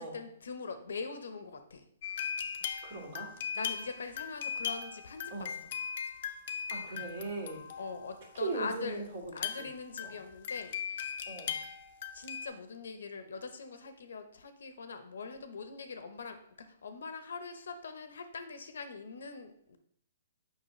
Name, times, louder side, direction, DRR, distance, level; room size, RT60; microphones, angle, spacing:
voice 1, 0.0-1.9 3.5-5.5 7.8-9.1 9.3-11.2 12.1-19.8, left 4 dB, 80° left, 8 dB, 0.8 m, -42 dB
sound 1, 2.0-8.3 9.3-12.5, left 7 dB, 55° left, 0.6 m, -39 dB
voice 2, 2.8-3.3 5.3-5.5 6.7-7.6 8.4-9.7 10.0-10.1 11.3-11.6, right 3 dB, 55° right, 0 dB, 2.1 m, -39 dB
6.6 x 5.3 x 3.1 m, 0.69 s
hypercardioid pair, 150°, 0 cm